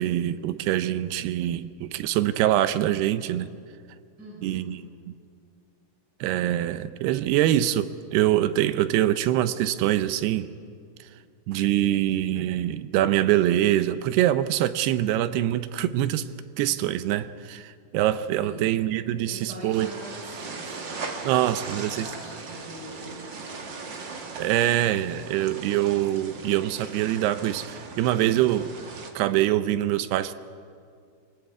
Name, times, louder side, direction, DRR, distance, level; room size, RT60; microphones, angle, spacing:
voice 1, 0.0-3.5 4.4-4.8 6.2-10.5 11.5-16.3 16.6-19.9 21.2-22.1 24.4-28.7 29.2-30.3, right 13 dB, 80° right, 13 dB, 2.7 m, -24 dB
voice 2, 4.2-4.7 18.4-18.8 19.1-23.6, right 1 dB, 25° right, -4 dB, 5.8 m, -43 dB
sound 1, 19.7-29.1, right 4 dB, 55° right, 1.2 m, -39 dB
26.5 x 18.5 x 8.4 m, 2.2 s
omnidirectional pair, 4.9 m